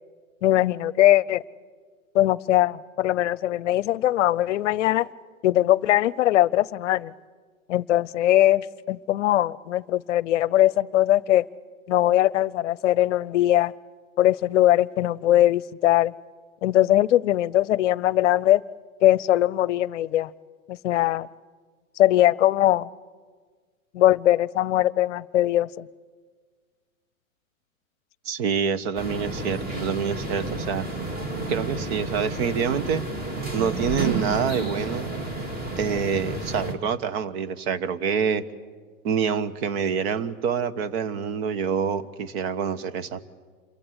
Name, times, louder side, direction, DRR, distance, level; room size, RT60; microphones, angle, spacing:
voice 1, 0.4-1.4 2.1-5.1 5.4-7.1 7.7-11.5 11.9-13.7 14.2-16.1 16.6-18.6 19.0-20.3 20.7-21.3 22.0-22.9 23.9-25.9, left 14 dB, 60° left, 23 dB, 0.7 m, -21 dB
voice 2, 28.2-30.8 31.5-33.1 33.5-35.1 35.8-38.4 39.0-43.2, right 6 dB, 50° right, 13 dB, 1.3 m, -26 dB
sound 1, 29.0-36.7, right 2 dB, 20° right, 2.9 m, -31 dB
28.0 x 23.0 x 8.2 m, 1.5 s
hypercardioid pair, 110°, 41 cm